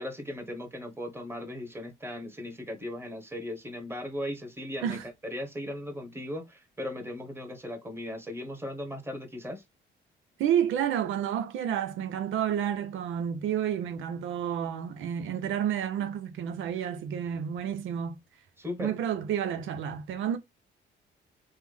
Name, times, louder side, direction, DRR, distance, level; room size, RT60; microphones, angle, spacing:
voice 1, 0.0-9.6 18.6-18.9, left 1 dB, 10° right, 1.3 m, -37 dB
voice 2, 10.4-18.2 18.8-20.4, right 9 dB, 85° right, 0.7 m, -30 dB
3.5 x 2.1 x 3.4 m
cardioid pair, 90°, 20 cm